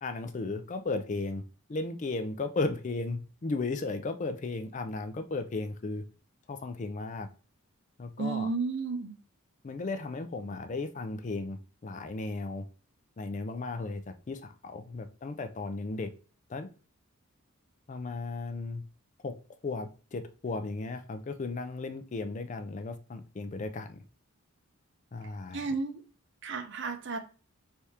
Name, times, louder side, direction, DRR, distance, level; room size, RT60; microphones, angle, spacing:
voice 1, 0.0-1.4 1.7-6.0 6.5-7.3 8.0-8.5 9.6-12.7 13.2-16.1 16.5-16.7 17.9-18.8 19.2-19.4 19.6-24.0 25.1-25.6, left 3 dB, 35° left, 0.4 m, -35 dB
voice 2, 8.2-9.1 25.5-26.0 26.4-27.2, right 4 dB, 55° right, 0.7 m, -32 dB
4.8 x 3.4 x 2.8 m
head